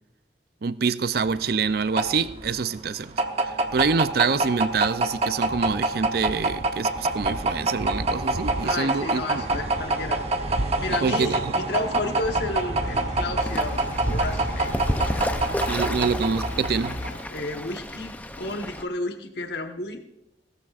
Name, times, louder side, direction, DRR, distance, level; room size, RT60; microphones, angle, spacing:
voice 1, 0.6-3.1 3.7-9.4 11.0-11.4 15.7-17.0, right 5 dB, 55° right, 0.5 m, -26 dB
sound 1, 1.2-17.2, right 2 dB, 35° right, 0.9 m, -26 dB
voice 2, 8.6-10.2 10.8-14.7 15.1-15.8 17.3-20.0, left 2 dB, 65° left, 1.2 m, -32 dB
sound 2, 12.8-17.2, left 1 dB, 40° left, 0.8 m, -35 dB
Fowl / Bird, 13.4-18.8, left 1 dB, 10° left, 0.6 m, -32 dB
18.5 x 14.0 x 2.5 m
head